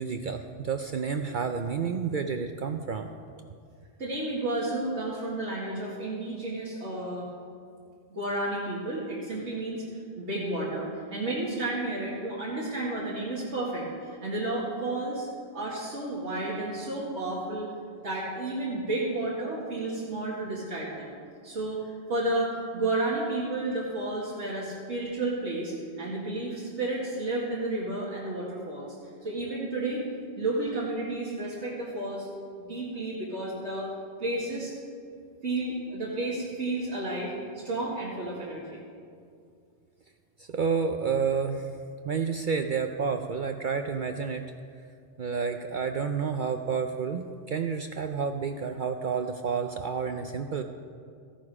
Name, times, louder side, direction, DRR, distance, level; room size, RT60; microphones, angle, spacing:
voice 1, 0.0-3.1 40.4-41.7 42.0-44.4 45.2-50.6, right 6 dB, 55° right, 6 dB, 0.6 m, -30 dB
voice 2, 4.0-7.3 8.1-9.8 10.2-15.3 15.5-17.7 18.0-21.2 21.4-29.0 29.2-30.0 30.4-32.3 32.6-33.9 34.2-34.7 35.4-38.8, right 2 dB, 85° right, -7 dB, 2.4 m, -32 dB
14.5 x 11.5 x 4.9 m, 2.3 s
omnidirectional pair, 1.1 m